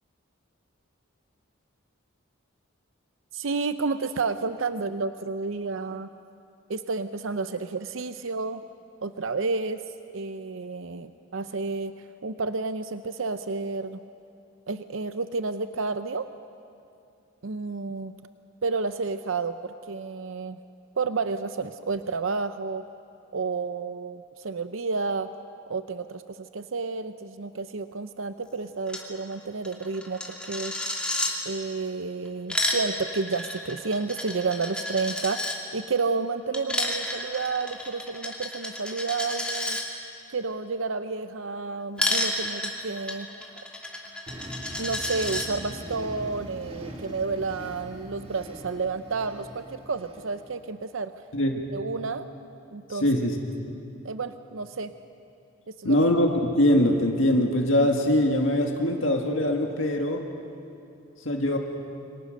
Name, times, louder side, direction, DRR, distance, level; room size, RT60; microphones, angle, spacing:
voice 1, 3.3-6.1 6.7-8.6 9.0-9.8 10.1-11.9 12.2-14.0 14.7-16.3 17.4-18.1 18.6-20.6 21.0-22.8 23.3-25.3 25.7-30.8 31.4-39.8 40.3-43.3 44.8-51.1 51.7-52.3 52.7-53.1 54.0-54.9 55.8-56.0, right 4 dB, 75° right, 11 dB, 0.7 m, -30 dB
Coin (dropping), 28.9-29.0 29.3-29.4 29.6-31.3 32.3-35.6 36.5-39.8 42.0-45.5, left 1 dB, 5° left, 2.4 m, -31 dB
sound 1, 44.3-50.7, equal, 30° right, 2.2 m, -42 dB
voice 2, 51.3-51.7 52.9-53.4 55.8-60.2 61.2-61.6, left 1 dB, 70° left, 2 dB, 2.0 m, -22 dB
28.0 x 24.5 x 6.6 m, 2.6 s
head